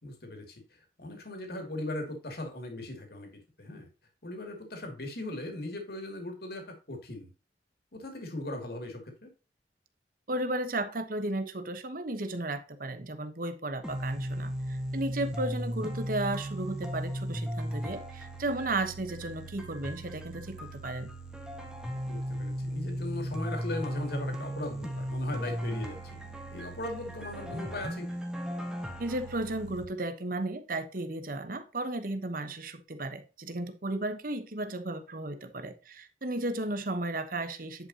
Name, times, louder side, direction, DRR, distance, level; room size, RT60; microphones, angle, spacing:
voice 1, 0.0-3.3 3.6-3.9 4.2-7.3 7.9-9.3 22.0-26.2 26.5-28.2, left 1 dB, 55° left, 4 dB, 2.6 m, -39 dB
voice 2, 10.3-21.1 29.0-37.9, right 2 dB, 50° right, 10 dB, 1.0 m, -34 dB
sound 1, 13.8-29.8, equal, 5° right, 1.3 m, -36 dB
10.5 x 5.6 x 2.9 m, 0.33 s
head